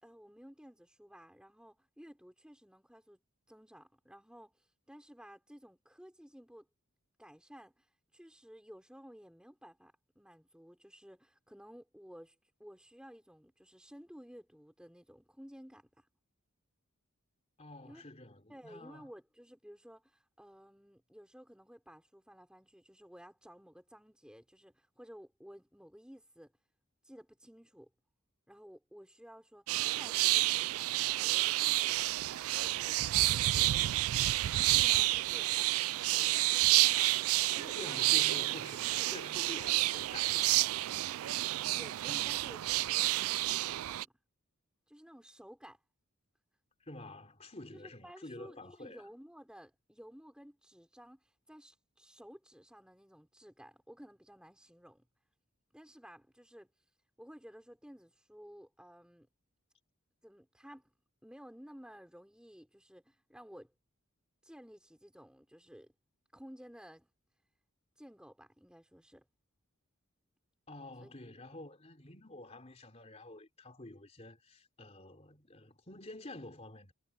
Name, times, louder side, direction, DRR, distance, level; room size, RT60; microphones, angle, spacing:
voice 1, 0.0-3.2 3.5-6.7 7.2-16.1 17.8-18.0 18.5-26.5 27.0-27.9 28.5-32.0 32.4-33.6 34.5-35.5 35.8-37.3 37.5-38.1 38.7-39.1 41.7-44.1 44.9-45.8 47.7-55.0 55.7-56.7 57.2-59.3 60.2-60.9 61.2-63.7 64.4-65.9 66.3-67.1 68.0-69.3 71.0-71.1, equal, 5° right, 4.5 m, -55 dB
voice 2, 17.6-19.1 37.7-40.7 46.9-49.0 70.7-76.9, left 2 dB, 30° left, 3.3 m, -49 dB
sound 1, 29.7-44.0, right 17 dB, 80° right, 0.3 m, -30 dB
head